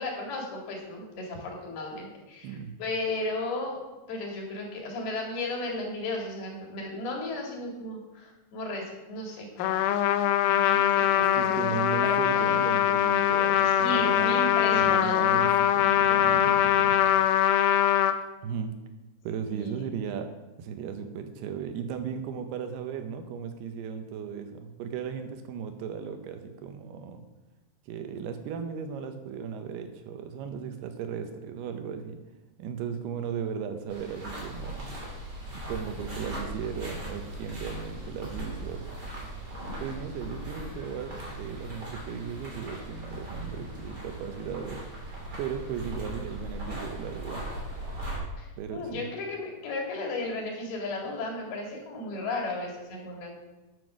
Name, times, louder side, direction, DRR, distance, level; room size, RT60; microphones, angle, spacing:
voice 1, 0.0-3.8 4.1-9.8 10.4-12.3 13.7-15.4 19.5-19.9 48.4-53.3, left 2 dB, 65° left, -1 dB, 4.1 m, -35 dB
voice 2, 2.4-2.7 11.3-17.0 18.4-18.8 19.2-20.3 20.6-27.2 27.9-32.2 32.6-34.8 35.7-38.9 39.6-44.8 45.4-47.5 48.6-49.1, right 7 dB, 75° right, 7 dB, 2.8 m, -36 dB
Trumpet, 9.6-18.2, left 11 dB, 90° left, 2.7 m, -23 dB
sound 1, 33.9-48.2, right 1 dB, 25° right, 3.3 m, -39 dB
10.0 x 7.9 x 6.2 m, 1.1 s
omnidirectional pair, 4.8 m